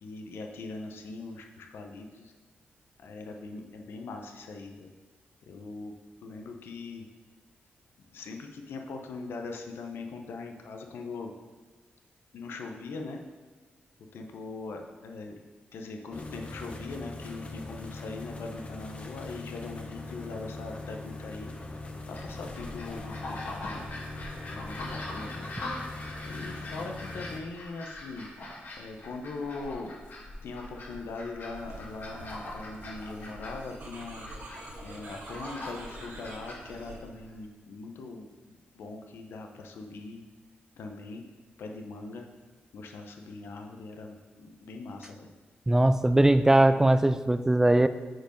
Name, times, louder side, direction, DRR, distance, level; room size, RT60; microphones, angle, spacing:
voice 1, 0.0-2.3 3.0-4.9 5.5-6.0 6.2-7.0 8.1-11.3 12.3-13.2 14.1-15.4 15.7-21.5 22.1-23.9 24.5-25.6 26.2-28.3 28.8-29.9 30.4-34.2 34.8-38.3 38.7-40.2 40.8-41.2 41.6-42.3 42.7-45.3, left 3 dB, 85° left, 3 dB, 0.8 m, -41 dB
sound 1, 16.1-27.4, left 2 dB, 35° left, 0.9 m, -41 dB
sound 2, 22.1-37.3, left 2 dB, 65° left, 2.0 m, -42 dB
sound 3, 31.5-37.0, right 2 dB, 65° right, 1.9 m, -45 dB
voice 2, 45.7-47.9, right 1 dB, 15° right, 12 dB, 0.3 m, -20 dB
7.7 x 4.6 x 5.2 m, 1.3 s
cardioid pair, 90°, 4 cm